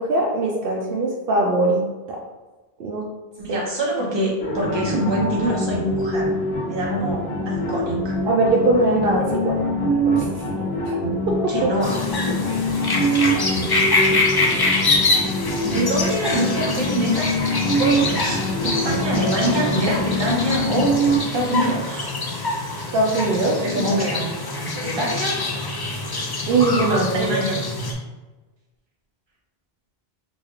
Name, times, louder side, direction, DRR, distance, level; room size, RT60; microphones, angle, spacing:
voice 1, 0.0-2.2 2.8-3.0 3.5-3.6 8.3-9.5 10.1-10.3 10.9-11.0 11.3-11.7 22.9-23.6 26.5-27.4, right 2 dB, 65° right, -2 dB, 0.7 m, -21 dB
voice 2, 3.4-6.3 6.7-8.2 11.5-12.0 15.6-20.9 21.3-22.1 23.4-24.3 24.6-25.4 26.9-27.6, right 1 dB, 30° right, -4 dB, 0.8 m, -25 dB
sound 1, 4.4-21.2, equal, 75° left, 1.0 m, -24 dB
sound 2, 11.8-27.9, left 2 dB, 40° left, 0.3 m, -25 dB
4.0 x 2.3 x 3.0 m, 1.2 s
omnidirectional pair, 1.1 m